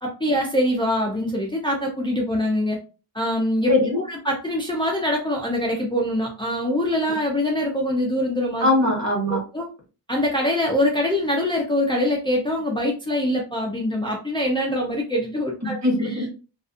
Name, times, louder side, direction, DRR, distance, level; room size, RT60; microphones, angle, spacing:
voice 1, 0.0-2.8 3.1-3.7 4.1-8.7 9.5-9.7 10.1-16.4, left 1 dB, 10° left, -2 dB, 0.5 m, -24 dB
voice 2, 3.7-4.0 8.6-9.4 15.6-16.4, left 1 dB, 40° right, -1 dB, 1.2 m, -21 dB
2.5 x 2.4 x 2.4 m, 0.33 s
wide cardioid pair, 90°, 43 cm